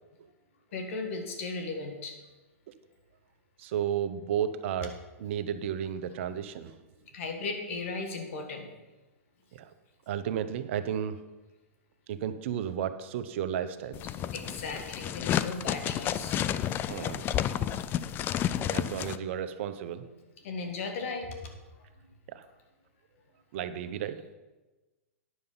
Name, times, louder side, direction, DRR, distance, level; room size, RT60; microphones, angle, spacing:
voice 1, 0.7-2.2 7.1-8.7 14.3-16.4 20.4-21.5, left 3 dB, 60° left, 4 dB, 1.8 m, -36 dB
voice 2, 3.6-4.9 5.2-6.7 9.5-9.7 10.1-11.2 12.1-14.0 16.9-17.2 18.7-20.1 22.3-22.4 23.5-24.2, right 9 dB, 55° right, 11 dB, 0.7 m, -33 dB
sound 1, 13.9-19.2, left 10 dB, 25° left, 0.4 m, -31 dB
9.6 x 6.8 x 5.5 m, 1.2 s
hypercardioid pair, 125°, 8 cm